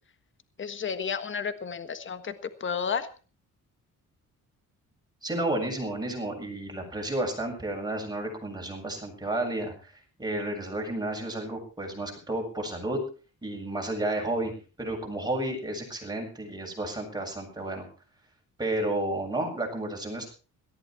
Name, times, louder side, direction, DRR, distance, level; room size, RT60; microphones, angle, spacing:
voice 1, 0.6-3.1, left 6 dB, 35° left, 11 dB, 1.5 m, -32 dB
voice 2, 5.2-9.9 10.2-13.0 13.4-14.5 14.8-17.9 18.6-20.3, right 1 dB, 10° right, 1 dB, 7.6 m, -31 dB
17.5 x 14.5 x 4.5 m, 0.36 s
cardioid pair, 110°, 32 cm